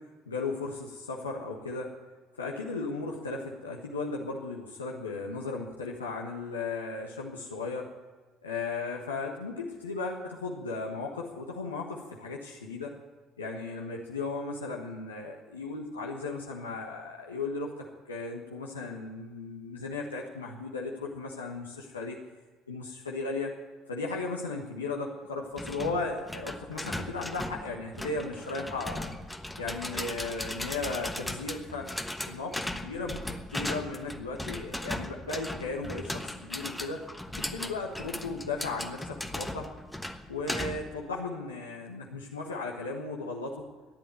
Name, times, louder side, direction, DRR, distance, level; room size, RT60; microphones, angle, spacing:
voice 1, 0.3-1.9 2.4-7.9 8.4-12.9 13.4-22.2 22.7-23.5 23.9-29.1 29.6-31.9 32.3-37.0 37.4-39.7 40.3-43.7, left 3 dB, 85° left, -2 dB, 1.3 m, -36 dB
sound 1, 25.6-41.0, left 1 dB, 5° left, 1.3 m, -37 dB
13.5 x 10.5 x 9.3 m, 1.3 s
figure-of-eight pair, 55°, 0 cm